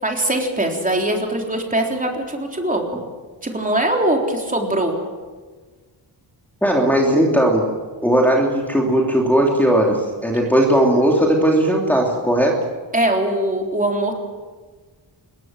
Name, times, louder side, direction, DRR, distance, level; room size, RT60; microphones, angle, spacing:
voice 1, 0.0-2.9 3.4-5.0 12.9-14.1, right 1 dB, 15° right, 1 dB, 3.8 m, -21 dB
voice 2, 6.6-7.7 8.0-12.6, right 1 dB, 5° left, -2 dB, 3.1 m, -17 dB
26.0 x 22.0 x 7.6 m, 1.4 s
wide cardioid pair, 145°, 47 cm